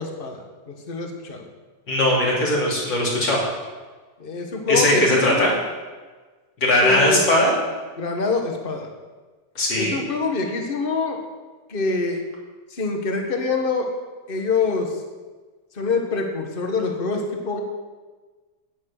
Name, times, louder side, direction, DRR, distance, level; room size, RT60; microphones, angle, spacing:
voice 1, 0.0-1.5 4.2-5.5 6.8-7.2 8.0-8.9 9.8-11.2 11.7-12.2 12.7-13.9 14.3-15.0 15.7-17.6, left 4 dB, 30° left, 3 dB, 1.5 m, -25 dB
voice 2, 1.9-3.4 4.7-5.5 6.6-7.5 9.6-10.0, left 1 dB, 60° left, -4 dB, 3.8 m, -19 dB
10.0 x 9.6 x 6.7 m, 1.3 s
omnidirectional pair, 2.3 m